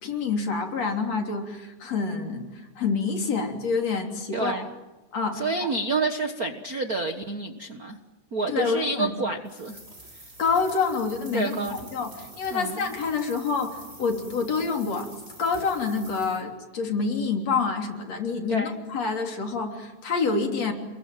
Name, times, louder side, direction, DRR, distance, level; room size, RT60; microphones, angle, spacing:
voice 1, 0.0-4.6 5.1-5.7 8.5-9.1 10.4-15.1 15.4-20.7, left 4 dB, 50° left, 3 dB, 4.3 m, -27 dB
voice 2, 4.3-4.7 5.3-8.0 8.3-9.8 11.3-11.8 12.5-12.9 18.5-18.7, right 3 dB, 80° right, 6 dB, 0.8 m, -28 dB
sound 1, 9.4-16.4, right 1 dB, 15° right, 6.3 m, -47 dB
29.5 x 22.0 x 9.2 m, 1.1 s
omnidirectional pair, 4.0 m